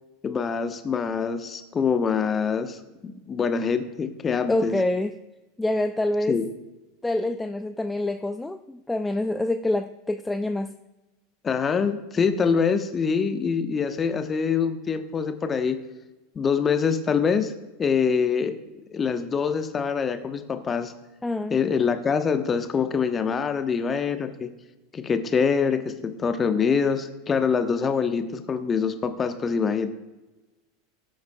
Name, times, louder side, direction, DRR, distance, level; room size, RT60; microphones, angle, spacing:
voice 1, 0.2-4.7 6.3-6.5 11.4-15.8 16.3-17.5 17.8-18.5 18.9-20.9 21.5-24.5 24.9-29.9, left 6 dB, 25° left, 8 dB, 1.0 m, -25 dB
voice 2, 4.5-5.2 5.6-6.4 7.0-10.8 21.2-21.6, left 1 dB, 10° left, 8 dB, 0.4 m, -26 dB
19.5 x 7.7 x 2.3 m, 1.1 s
figure-of-eight pair, 85°, 0 cm